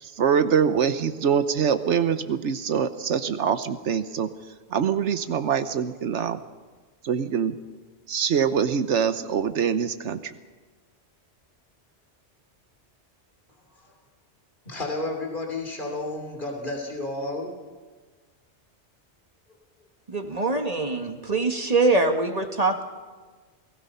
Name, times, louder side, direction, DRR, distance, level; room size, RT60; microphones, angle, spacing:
voice 1, 0.0-4.3 4.7-6.4 7.0-7.5 8.1-10.3, right 7 dB, 80° right, 11 dB, 1.2 m, -24 dB
voice 2, 14.6-17.5, left 2 dB, 45° left, 2 dB, 3.4 m, -31 dB
voice 3, 20.1-22.8, right 3 dB, 35° right, 5 dB, 1.9 m, -23 dB
28.5 x 18.5 x 5.5 m, 1.4 s
omnidirectional pair, 1.2 m